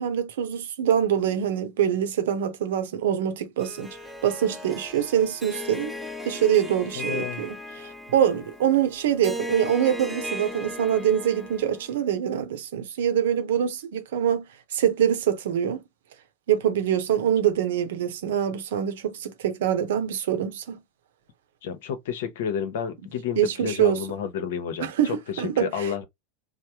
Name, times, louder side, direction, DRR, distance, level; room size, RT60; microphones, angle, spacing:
voice 1, 0.0-4.0 4.2-5.9 6.2-14.5 14.7-15.8 16.5-20.8 23.4-24.0 24.8-25.7, right 9 dB, 70° right, 0.7 m, -24 dB
Harp, 3.6-12.0, left 1 dB, 5° right, 0.7 m, -37 dB
voice 2, 7.0-7.4 21.6-26.0, left 7 dB, 65° left, 0.8 m, -30 dB
3.3 x 2.0 x 2.8 m
hypercardioid pair, 90°, 0 cm